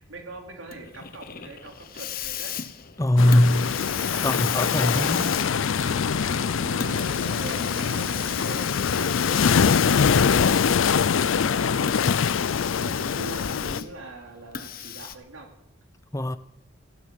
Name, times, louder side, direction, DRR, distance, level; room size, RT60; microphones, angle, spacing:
voice 1, 0.0-2.6 4.0-5.4 6.3-15.5, right 2 dB, 75° right, 2.8 m, -43 dB
Hiss, 0.7-11.0 11.8-14.0 14.5-15.2, left 10 dB, 45° left, 0.9 m, -35 dB
voice 2, 3.0-3.7 4.2-5.3 16.1-16.4, left 1 dB, 15° left, 0.6 m, -21 dB
sound 1, 3.2-13.8, left 6 dB, 75° left, 0.5 m, -23 dB
sound 2, 3.3-10.1, right 2 dB, 50° right, 1.6 m, -41 dB
15.5 x 11.0 x 7.3 m
head